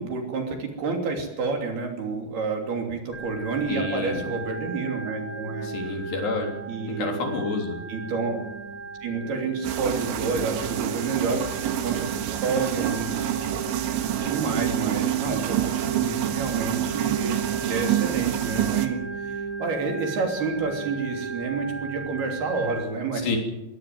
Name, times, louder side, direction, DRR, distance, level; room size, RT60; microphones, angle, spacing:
voice 1, 0.0-6.0 6.7-7.2 7.9-8.5 9.0-11.5 11.8-13.1 14.0-23.3, right 4 dB, 55° right, 3 dB, 4.8 m, -29 dB
Organ, 3.1-22.8, right 4 dB, 15° left, 6.1 m, -36 dB
voice 2, 3.7-4.2 5.6-6.5 6.9-7.8 23.2-23.4, left 4 dB, 60° left, 3 dB, 5.4 m, -29 dB
sound 1, 9.6-18.9, right 11 dB, 75° right, 3.8 m, -27 dB
23.0 x 17.0 x 7.8 m, 0.94 s
omnidirectional pair, 5.5 m